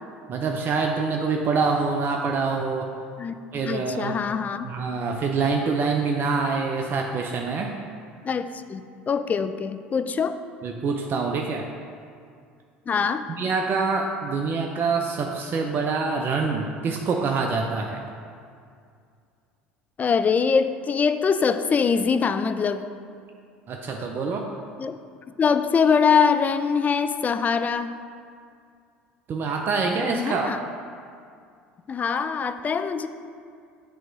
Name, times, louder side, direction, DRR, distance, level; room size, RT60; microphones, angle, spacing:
voice 1, 0.3-2.9 3.5-4.2 4.6-7.7 10.6-11.7 13.4-18.0 23.7-24.5 29.3-30.5, right 4 dB, 40° right, 2 dB, 0.5 m, -25 dB
voice 2, 3.6-4.7 8.2-10.4 12.9-13.2 20.0-22.9 24.8-24.9 25.4-27.9 30.0-30.6 31.9-33.1, left 6 dB, 30° left, 10 dB, 0.3 m, -23 dB
8.3 x 3.0 x 4.7 m, 2.3 s
hypercardioid pair, 70°, 5 cm